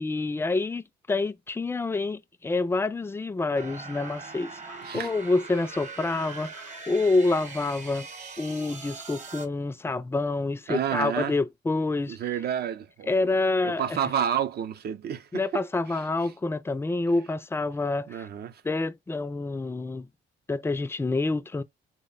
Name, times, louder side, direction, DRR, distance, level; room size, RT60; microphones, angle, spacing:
voice 1, 0.0-8.1 8.4-12.2 13.1-14.0 15.3-18.3 18.6-20.1 20.5-21.6, left 3 dB, 10° left, 0.3 m, -27 dB
sound 1, 3.5-9.5, right 4 dB, 40° right, 0.9 m, -42 dB
voice 2, 4.8-5.1 10.7-11.3 12.1-13.3 13.6-15.6 15.9-16.0 18.1-18.6, right 9 dB, 55° right, 0.5 m, -30 dB
3.5 x 2.1 x 3.8 m
cardioid pair, 90°, 20 cm